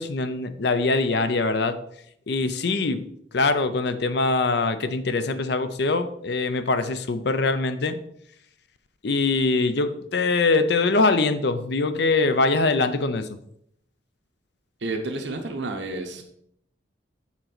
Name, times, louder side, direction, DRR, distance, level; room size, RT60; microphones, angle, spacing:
voice 1, 0.0-1.8 2.3-3.0 3.3-8.0 9.0-13.3, left 3 dB, 65° left, 11 dB, 0.6 m, -23 dB
voice 2, 14.8-16.2, right 2 dB, 75° right, 3 dB, 1.0 m, -30 dB
7.3 x 3.9 x 5.9 m, 0.73 s
head